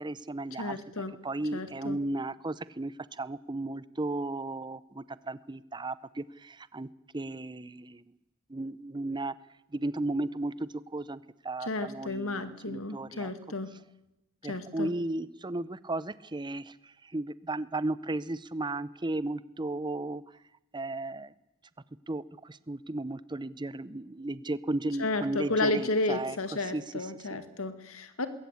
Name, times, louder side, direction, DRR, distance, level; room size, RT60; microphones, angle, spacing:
voice 1, 0.0-0.8 1.2-6.9 7.1-8.0 8.5-9.3 9.7-13.3 14.4-20.2 20.7-21.3 22.1-26.4 26.6-27.4, right 2 dB, 20° right, 17 dB, 0.7 m, -35 dB
voice 2, 0.6-1.1 1.5-2.0 11.6-13.7 14.4-14.9 25.0-28.3, left 2 dB, 70° left, 10 dB, 2.1 m, -32 dB
21.0 x 17.5 x 8.5 m, 0.96 s
head